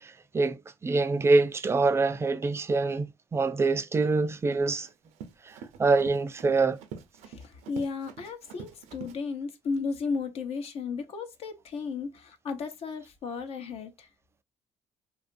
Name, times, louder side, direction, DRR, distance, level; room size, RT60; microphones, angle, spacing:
voice 1, 0.0-3.1 3.3-4.9 5.5-6.8, right 3 dB, 25° right, 0.4 m, -25 dB
Run, 4.4-9.2, right 7 dB, 90° right, 0.5 m, -46 dB
voice 2, 7.2-14.1, left 4 dB, 60° left, 0.8 m, -34 dB
2.8 x 2.5 x 2.5 m
cardioid pair, 95°, 11 cm